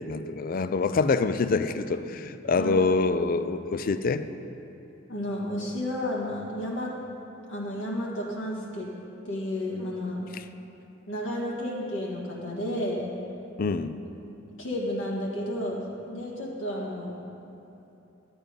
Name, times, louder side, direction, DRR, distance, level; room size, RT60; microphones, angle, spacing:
voice 1, 0.0-4.2 10.3-10.4 13.6-14.0, left 4 dB, 45° left, 12 dB, 0.4 m, -26 dB
voice 2, 5.1-6.9 7.5-8.9 9.2-10.3 11.1-13.1 14.6-17.2, left 1 dB, 75° left, -4 dB, 1.8 m, -32 dB
12.0 x 9.0 x 5.2 m, 2.9 s
head